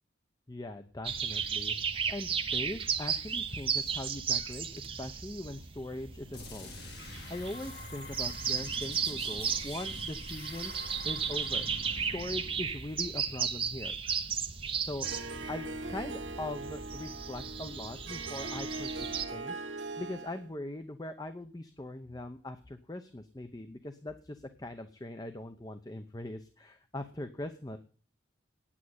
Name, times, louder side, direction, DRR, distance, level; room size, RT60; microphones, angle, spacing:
voice 1, 0.5-6.8 7.1-11.7 12.0-14.0 14.8-15.1 15.5-27.8, left 1 dB, 20° left, 8 dB, 0.7 m, -41 dB
sound 1, 1.0-19.2, right 6 dB, 30° right, 0.9 m, -35 dB
sound 2, 6.3-13.9, left 2 dB, 60° left, 3.6 m, -47 dB
Harp, 15.0-20.5, right 2 dB, 80° right, 1.4 m, -40 dB
9.2 x 8.7 x 9.5 m, 0.41 s
head